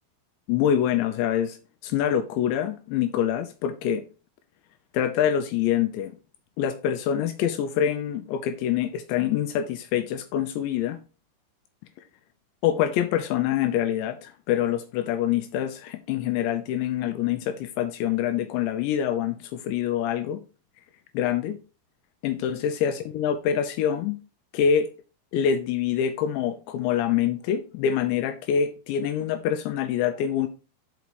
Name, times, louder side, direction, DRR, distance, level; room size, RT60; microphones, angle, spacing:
voice 1, 0.5-1.6 1.8-4.0 4.9-6.2 6.6-11.0 12.6-20.4 21.1-21.6 22.2-24.2 24.5-24.9 25.3-30.5, left 9 dB, 80° left, 2.7 m, -25 dB
5.9 x 5.3 x 4.6 m
omnidirectional pair, 5.5 m